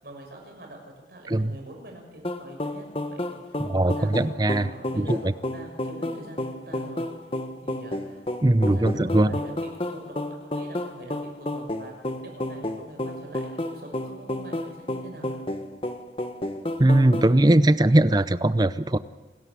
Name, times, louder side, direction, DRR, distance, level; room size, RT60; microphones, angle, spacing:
voice 1, 0.0-7.1 7.6-8.2 8.6-15.3, right 1 dB, 60° right, 2 dB, 6.3 m, -44 dB
sound 1, 2.2-17.3, left 1 dB, 30° left, 1.3 m, -31 dB
voice 2, 3.6-4.7 4.9-5.3 8.4-9.3 16.8-19.0, right 1 dB, 25° right, 14 dB, 0.6 m, -20 dB
27.5 x 13.5 x 8.3 m, 1.2 s
head